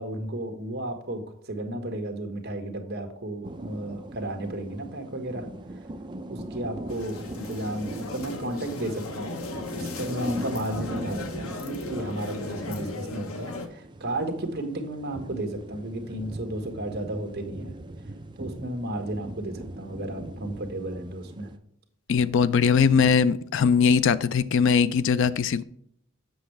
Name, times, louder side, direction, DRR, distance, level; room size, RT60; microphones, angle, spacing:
voice 1, 0.0-5.8 6.3-17.7 18.4-21.5, right 1 dB, 50° right, 1.4 m, -33 dB
sound 1, 3.4-21.6, right 1 dB, 20° right, 0.5 m, -40 dB
sound 2, 6.9-13.7, left 3 dB, 85° left, 1.0 m, -37 dB
voice 2, 22.1-25.6, left 6 dB, 65° left, 0.4 m, -21 dB
7.8 x 6.3 x 3.3 m
head